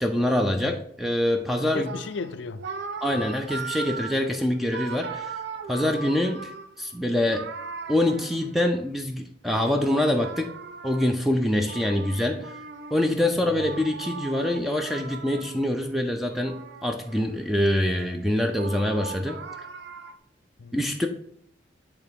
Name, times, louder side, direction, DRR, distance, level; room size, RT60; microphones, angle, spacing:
voice 1, 0.0-1.9 3.0-5.4 5.7-6.5 6.8-7.5 7.9-10.5 10.8-12.5 12.9-16.5 16.8-19.4 20.7-21.1, left 1 dB, ahead, 4 dB, 0.4 m, -25 dB
voice 2, 1.6-2.6 13.3-13.6 20.6-20.8, left 4 dB, 75° left, 11 dB, 0.4 m, -36 dB
sound 1, 1.8-8.8 9.4-15.8 16.2-17.4 17.8-20.2, right 4 dB, 65° right, 0.5 m, -39 dB
7.9 x 3.5 x 3.5 m, 0.68 s
head